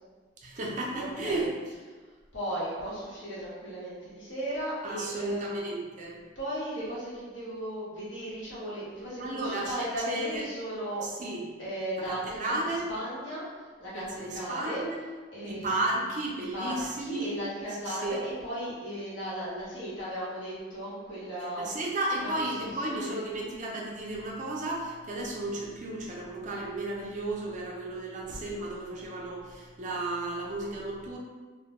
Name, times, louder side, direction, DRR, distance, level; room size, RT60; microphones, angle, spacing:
voice 1, 0.4-1.5 4.8-6.2 9.2-10.4 11.0-11.4 12.1-12.9 13.9-15.0 15.4-17.4 17.9-18.2 21.6-31.2, right 2 dB, 40° right, -2 dB, 0.4 m, -33 dB
voice 2, 0.9-1.5 2.3-5.6 6.3-11.2 11.6-14.8 15.3-16.0 16.5-21.7 22.2-23.2, equal, 75° left, -8 dB, 1.0 m, -36 dB
2.1 x 2.1 x 2.9 m, 1.4 s
head